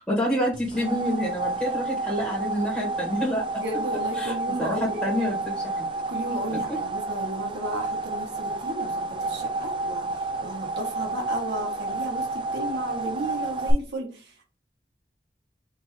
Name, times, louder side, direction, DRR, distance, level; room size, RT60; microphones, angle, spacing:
voice 1, 0.0-3.6 4.1-5.9 6.5-6.8, equal, 5° left, -6 dB, 1.5 m, -28 dB
sound 1, 0.5-13.7, right 3 dB, 30° right, 0.5 m, -30 dB
voice 2, 3.6-5.1 6.1-10.1 10.4-14.3, right 1 dB, 85° right, 1 dB, 1.5 m, -34 dB
3.7 x 2.9 x 4.3 m, 0.34 s
head